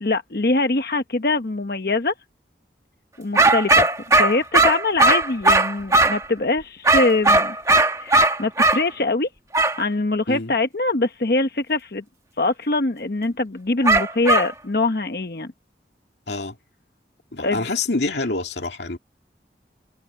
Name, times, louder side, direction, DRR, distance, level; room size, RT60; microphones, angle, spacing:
voice 1, 0.0-2.1 3.2-7.6 8.0-9.3 9.8-12.0 12.4-15.5 17.4-17.6, left 2 dB, 55° left, 0.9 m, -23 dB
sound 1, 3.4-6.3 6.9-8.8 9.5-9.8 13.9-14.5, right 2 dB, 20° right, 1.5 m, -17 dB
voice 2, 17.3-19.0, left 3 dB, 85° left, 2.3 m, -26 dB
head